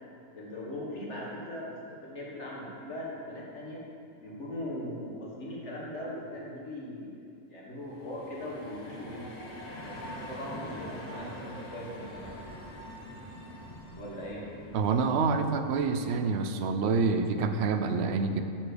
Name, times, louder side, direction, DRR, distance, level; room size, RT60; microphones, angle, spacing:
voice 1, 0.3-3.8 4.2-7.2 7.5-9.3 9.8-12.4 14.0-14.5, left 1 dB, 50° left, -4 dB, 1.8 m, -40 dB
sound 1, 7.8-16.5, left 1 dB, 35° left, 0.9 m, -44 dB
voice 2, 14.7-18.4, right 4 dB, 60° right, 7 dB, 0.7 m, -27 dB
9.0 x 4.5 x 6.7 m, 2.4 s
omnidirectional pair, 1.5 m